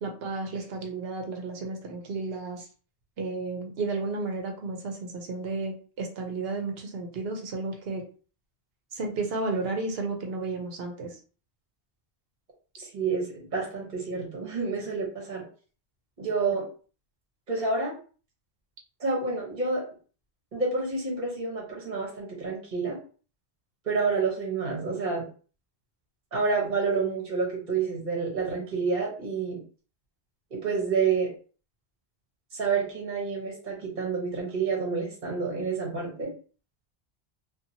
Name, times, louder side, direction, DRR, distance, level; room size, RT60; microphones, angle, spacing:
voice 1, 0.0-2.7 3.2-8.0 8.9-11.2, right 3 dB, 75° right, 3 dB, 1.0 m, -32 dB
voice 2, 12.8-15.4 16.2-16.6 17.5-18.0 19.0-19.8 20.5-23.0 23.8-25.2 26.3-29.6 30.5-31.3 32.5-36.3, right 4 dB, 50° right, -2 dB, 1.1 m, -29 dB
2.7 x 2.5 x 2.7 m, 0.39 s
omnidirectional pair, 1.0 m